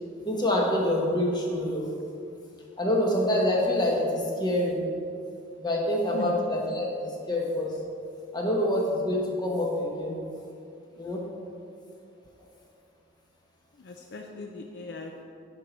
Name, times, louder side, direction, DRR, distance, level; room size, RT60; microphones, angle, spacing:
voice 1, 0.2-1.9 2.8-4.8 5.6-7.7 8.3-10.2 11.0-11.2, left 1 dB, 20° left, -2 dB, 1.3 m, -26 dB
voice 2, 13.7-15.2, left 3 dB, 60° left, 3 dB, 0.5 m, -39 dB
10.5 x 4.4 x 5.3 m, 2.5 s
head